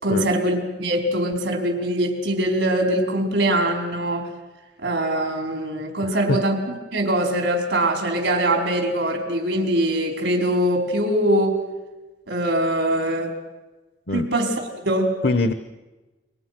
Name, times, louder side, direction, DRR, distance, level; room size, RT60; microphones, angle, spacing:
voice 1, 0.0-4.3 4.8-11.6 12.3-13.3 14.1-15.2, right 1 dB, 90° right, 3 dB, 4.9 m, -22 dB
voice 2, 6.0-6.4 14.1-14.3 15.2-15.5, left 2 dB, 60° left, 10 dB, 0.9 m, -23 dB
29.5 x 23.5 x 6.1 m, 1.2 s
head